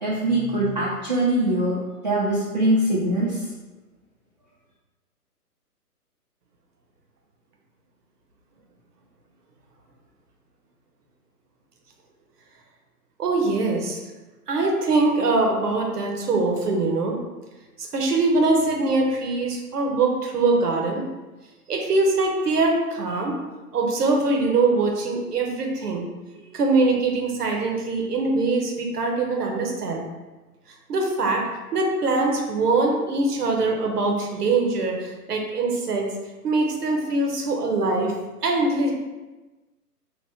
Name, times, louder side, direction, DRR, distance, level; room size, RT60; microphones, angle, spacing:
voice 1, 0.0-1.7 2.0-3.4, right 1 dB, 30° right, -9 dB, 0.4 m, -22 dB
voice 2, 13.2-14.0 14.5-17.2 17.8-21.0 21.7-23.4 23.7-26.1 26.5-30.0 30.9-31.4 31.7-36.1 36.4-38.1 38.4-38.9, right 3 dB, 75° right, 1 dB, 0.9 m, -22 dB
2.9 x 2.1 x 3.4 m, 1.2 s
figure-of-eight pair, 130°, 47 cm